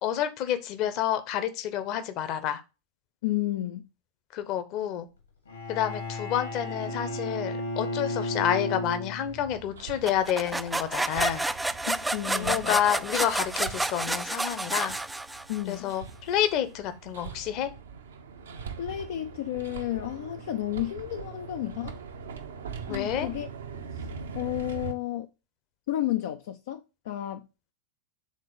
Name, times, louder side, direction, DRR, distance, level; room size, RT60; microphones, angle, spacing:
voice 1, 0.0-2.6 4.3-5.1 5.7-11.4 12.3-15.0 15.7-17.7 22.9-23.3, left 10 dB, 40° left, 0.9 m, -29 dB
voice 2, 3.2-3.9 11.9-12.8 15.5-15.9 18.6-22.0 22.9-23.5 23.9-24.1 24.3-25.3 25.9-27.5, left 14 dB, 55° left, 0.5 m, -32 dB
Bowed string instrument, 5.5-9.6, left 1 dB, 75° left, 2.6 m, -33 dB
Hammer, 9.3-24.9, right 6 dB, 65° right, 0.8 m, -42 dB
sound 1, 10.1-15.7, right 2 dB, 5° right, 0.3 m, -30 dB
6.6 x 3.8 x 5.1 m
figure-of-eight pair, 90°, 0 cm